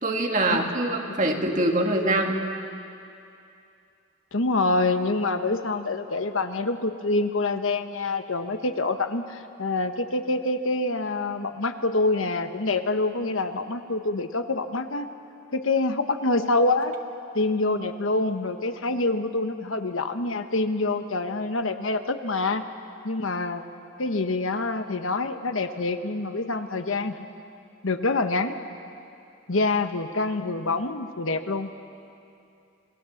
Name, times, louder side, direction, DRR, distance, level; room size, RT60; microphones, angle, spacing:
voice 1, 0.0-2.4, right 2 dB, 35° right, 2 dB, 2.0 m, -24 dB
voice 2, 4.3-15.1 15.5-16.9 17.3-22.6 23.0-23.6 24.0-27.2 27.8-28.6 29.5-31.7, left 2 dB, 80° left, 8 dB, 1.2 m, -26 dB
27.5 x 20.0 x 7.2 m, 2.6 s
head